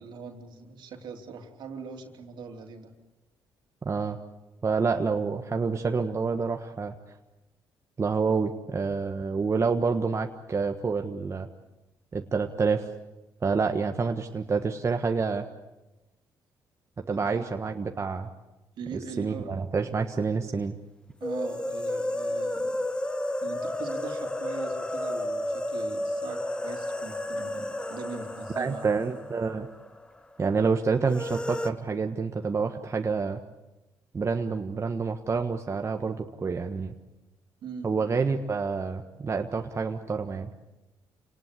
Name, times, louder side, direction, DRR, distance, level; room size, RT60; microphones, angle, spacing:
voice 1, 0.0-2.9 17.1-17.6 18.8-19.5 21.2-22.8 23.4-28.8 37.6-37.9, right 5 dB, 70° right, 4 dB, 3.2 m, -41 dB
voice 2, 3.8-4.2 4.6-6.9 8.0-11.5 12.1-12.9 13.4-15.5 17.1-18.3 19.2-20.7 28.5-29.7 30.4-33.4 34.1-36.9 37.8-40.5, right 4 dB, 35° right, 4 dB, 1.5 m, -28 dB
sound 1, 21.2-30.1 30.3-30.4 31.1-31.7, left 1 dB, 10° left, 1.1 m, -32 dB
27.5 x 19.0 x 8.4 m, 1.0 s
cardioid pair, 80°, 8 cm